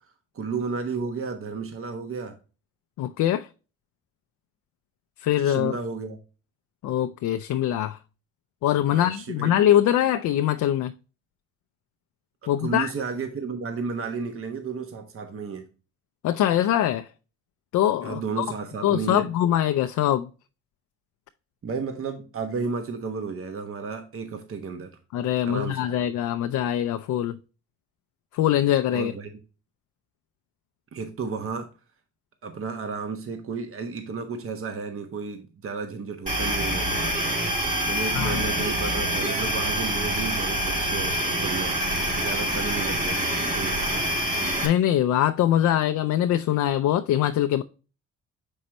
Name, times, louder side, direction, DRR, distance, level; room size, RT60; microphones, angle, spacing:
voice 1, 0.3-2.3 5.3-6.2 8.9-9.6 12.4-15.6 18.0-19.3 21.6-24.9 25.4-25.9 28.9-29.3 30.9-31.7 32.4-37.2 37.9-41.7 42.1-44.0, right 5 dB, 45° right, 1.1 m, -33 dB
voice 2, 3.0-3.5 5.2-5.7 6.8-8.0 8.6-10.9 12.5-12.9 16.2-17.1 17.7-18.5 18.8-20.3 25.1-27.4 28.3-29.1 38.1-38.4 44.6-47.6, left 11 dB, 70° left, 0.5 m, -23 dB
sound 1, 36.3-44.7, equal, 25° right, 2.6 m, -26 dB
6.4 x 5.3 x 2.9 m
cardioid pair, 90°, 30 cm